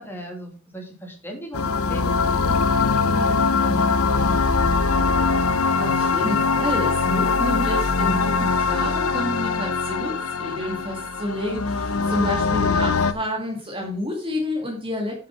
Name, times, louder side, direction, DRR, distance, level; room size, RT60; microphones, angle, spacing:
voice 1, 0.0-5.4, equal, 10° left, 1 dB, 2.7 m, -39 dB
sound 1, 1.5-13.1, left 4 dB, 75° left, 0.9 m, -22 dB
voice 2, 5.8-15.3, left 1 dB, 25° right, 0 dB, 2.3 m, -29 dB
10.0 x 6.7 x 5.2 m, 0.36 s
head